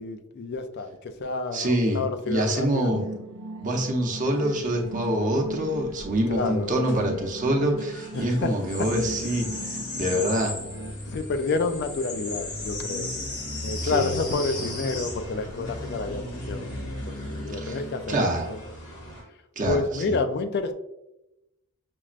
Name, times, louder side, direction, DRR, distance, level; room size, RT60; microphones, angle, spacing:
voice 1, 0.0-2.9 6.3-6.7 8.1-8.5 11.1-13.1 13.6-16.7 17.1-18.6 19.6-20.7, left 3 dB, 50° left, 8 dB, 0.3 m, -29 dB
voice 2, 1.5-3.0 3.6-10.6 13.8-14.1 17.6-17.8 18.1-18.5 19.6-20.2, right 1 dB, 35° right, 1 dB, 0.7 m, -26 dB
sound 1, 2.9-10.9, right 2 dB, 85° right, 0.4 m, -39 dB
sound 2, 4.2-19.2, left 1 dB, 85° left, 1.3 m, -36 dB
6.0 x 2.1 x 2.4 m, 0.90 s
head